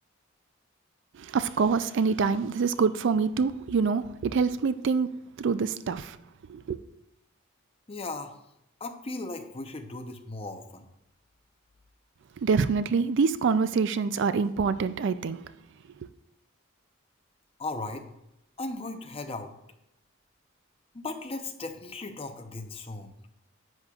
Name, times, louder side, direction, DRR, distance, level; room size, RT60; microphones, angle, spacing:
voice 1, 1.1-5.1 5.4-6.2 6.5-6.8 12.4-15.4 16.0-16.1, right 5 dB, 60° right, 0.4 m, -26 dB
voice 2, 7.9-8.4 8.8-10.9 17.6-18.1 18.6-19.5 20.9-23.1, left 2 dB, 30° left, 0.7 m, -37 dB
10.5 x 8.3 x 2.4 m
head